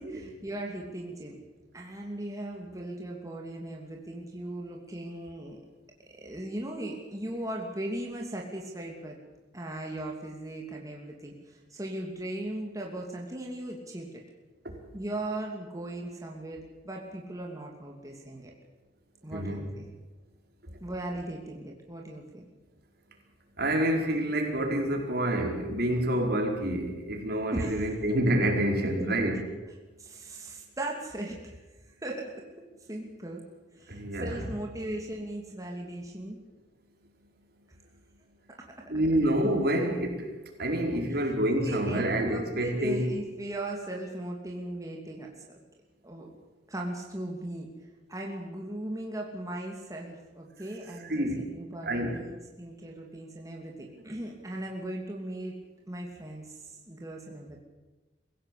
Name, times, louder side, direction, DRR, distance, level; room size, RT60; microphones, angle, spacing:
voice 1, 0.0-1.4 1.7-5.6 6.2-9.2 9.5-14.2 14.9-18.5 19.2-19.9 20.8-22.5 27.5-27.9 29.0-29.2 30.0-31.6 31.8-32.4 32.9-33.4 33.8-36.4 38.5-38.9 41.1-41.2 41.6-45.5 46.0-46.3 46.7-47.7 48.1-55.6 55.9-57.6, right 1 dB, 20° right, 0 dB, 2.7 m, -38 dB
voice 2, 19.3-19.7 23.6-29.4 33.9-34.4 38.9-40.3 40.6-43.1 51.1-51.4 51.8-52.2, right 1 dB, 60° right, 2 dB, 4.7 m, -27 dB
24.0 x 16.0 x 8.6 m, 1.2 s
head